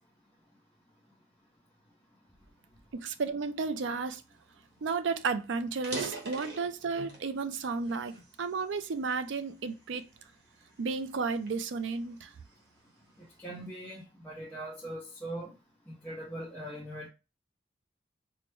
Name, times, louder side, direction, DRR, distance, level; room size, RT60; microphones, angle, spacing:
voice 1, 2.9-4.2 4.8-10.1 10.8-12.3, right 4 dB, 75° right, 0.4 m, -33 dB
sound 1, 4.6-4.7 5.0-5.2 5.7-7.3 7.8-9.1 9.7-10.0 10.6-12.6, right 3 dB, 60° right, 1.1 m, -42 dB
voice 2, 13.4-15.5 15.9-17.1, right 1 dB, 10° left, 0.6 m, -41 dB
4.4 x 2.1 x 3.1 m
head